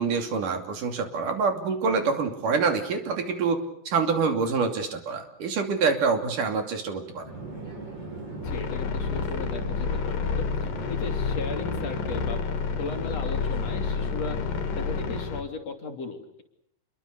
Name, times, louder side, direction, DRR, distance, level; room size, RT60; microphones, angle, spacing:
voice 1, 0.0-3.6 3.9-7.2, right 5 dB, 70° right, 5 dB, 4.3 m, -26 dB
Conversation / Chatter / Fixed-wing aircraft airplane, 7.2-15.2, right 3 dB, 30° right, 7.3 m, -38 dB
sound 1, 8.4-15.4, left 6 dB, 90° left, 3.3 m, -29 dB
voice 2, 8.4-10.5 10.9-12.4 12.8-14.4 14.8-16.4, left 4 dB, 50° left, 3 dB, 3.9 m, -36 dB
28.5 x 22.5 x 6.8 m, 0.73 s
omnidirectional pair, 3.8 m